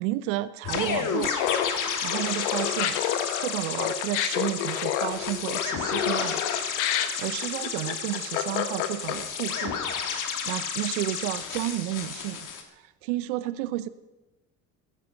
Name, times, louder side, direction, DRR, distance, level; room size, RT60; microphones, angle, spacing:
voice 1, 0.0-1.3 1.8-6.4 7.0-9.8 10.0-12.5 12.8-13.9, right 16 dB, 80° right, 15 dB, 0.8 m, -32 dB
sound 1, 0.6-12.6, left 7 dB, 55° left, 2.6 m, -32 dB
Laughter, 1.4-9.4, left 11 dB, 80° left, 1.3 m, -29 dB
15.0 x 12.5 x 6.5 m, 1.1 s
hypercardioid pair, 70°, 36 cm